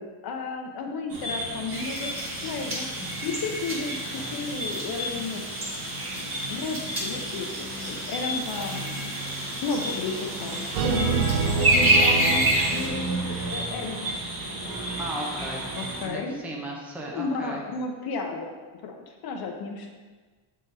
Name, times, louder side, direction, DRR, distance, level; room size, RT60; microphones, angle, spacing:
voice 1, 0.0-2.9 3.2-6.0 6.5-9.3 9.6-14.1 15.8-16.3 17.1-18.6 18.8-19.9, left 4 dB, 50° left, 3 dB, 0.6 m, -33 dB
sound 1, 1.1-16.1, right 1 dB, 45° right, 1.2 m, -34 dB
sound 2, 1.7-12.9, right 1 dB, 25° right, 1.4 m, -29 dB
sound 3, 10.7-13.7, right 5 dB, 85° right, 0.7 m, -27 dB
voice 2, 15.0-15.6 16.0-17.6, right 1 dB, 5° right, -2 dB, 0.5 m, -36 dB
7.3 x 3.8 x 4.0 m, 1.3 s
cardioid pair, 165°, 49 cm